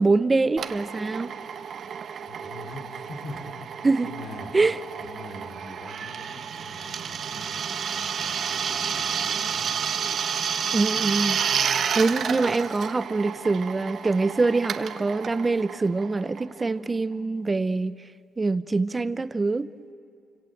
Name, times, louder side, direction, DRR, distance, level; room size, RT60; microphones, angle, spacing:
voice 1, 0.0-1.4 3.8-4.1 4.5-4.7 10.7-11.4 11.9-18.0 18.4-19.7, right 3 dB, 20° right, 0.7 m, -24 dB
Drill, 0.6-16.9, right 7 dB, 50° right, 1.2 m, -30 dB
voice 2, 2.3-3.6 4.0-4.6 5.0-7.6 7.9-9.9, left 2 dB, 55° left, 3.6 m, -43 dB
29.0 x 26.0 x 7.9 m
cardioid pair, 135°, 0 cm